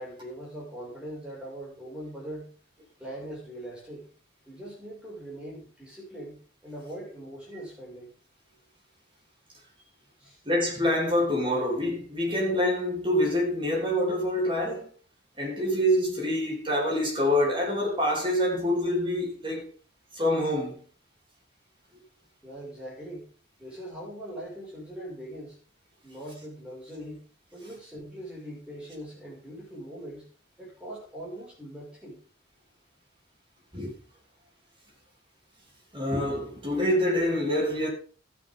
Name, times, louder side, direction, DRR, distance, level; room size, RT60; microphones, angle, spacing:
voice 1, 0.0-2.5 3.0-4.1 4.5-6.4 6.6-8.1 10.2-10.4 22.4-23.3 23.6-25.6 26.0-30.3 30.6-32.2, right 1 dB, 5° right, 6.0 m, -41 dB
voice 2, 10.5-14.9 15.4-19.7 20.1-20.8 33.7-33.9 35.9-37.9, left 1 dB, 25° right, 3.3 m, -26 dB
12.5 x 9.8 x 3.8 m
head